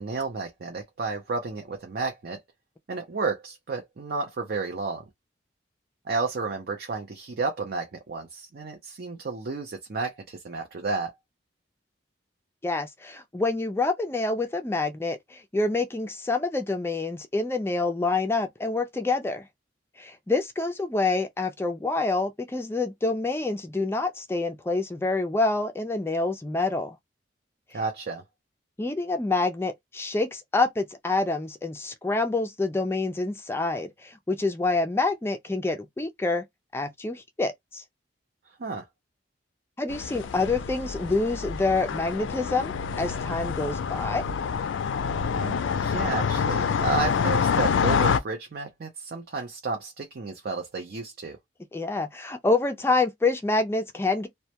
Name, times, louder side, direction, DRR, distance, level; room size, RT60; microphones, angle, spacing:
voice 1, 0.0-2.4 2.9-5.0 6.1-11.1 27.7-28.2 38.6-38.9 45.3-51.4, right 4 dB, 55° right, 0.5 m, -32 dB
voice 2, 12.6-19.5 20.0-27.0 28.8-36.4 36.7-37.8 39.8-44.2 51.7-54.3, left 3 dB, 15° left, 0.3 m, -27 dB
sound 1, 39.9-48.2, left 6 dB, 90° left, 0.3 m, -27 dB
2.1 x 2.1 x 2.8 m
head